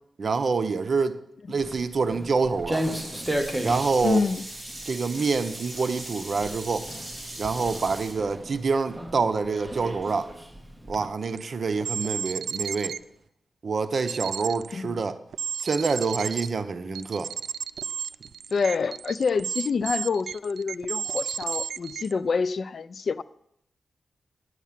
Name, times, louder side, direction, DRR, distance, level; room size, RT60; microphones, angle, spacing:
voice 1, 0.2-1.2 1.5-2.8 3.6-4.2 4.9-6.9 7.4-10.3 10.9-13.0 13.6-15.2 15.6-17.3, right 4 dB, 55° right, 0.7 m, -26 dB
Walk footsteps, 1.6-11.1, right 1 dB, 10° right, 1.0 m, -35 dB
Sink (filling or washing), 2.7-8.1, right 1 dB, 25° right, 4.8 m, -39 dB
voice 2, 4.0-4.4 14.7-15.0 18.5-23.2, left 5 dB, 55° left, 0.4 m, -27 dB
sound 1, 11.4-11.5 11.8-13.0 14.1-14.7 15.3-16.5 17.0-22.1, right 6 dB, 90° right, 0.3 m, -33 dB
9.4 x 8.2 x 7.4 m
wide cardioid pair, 115°, 0 cm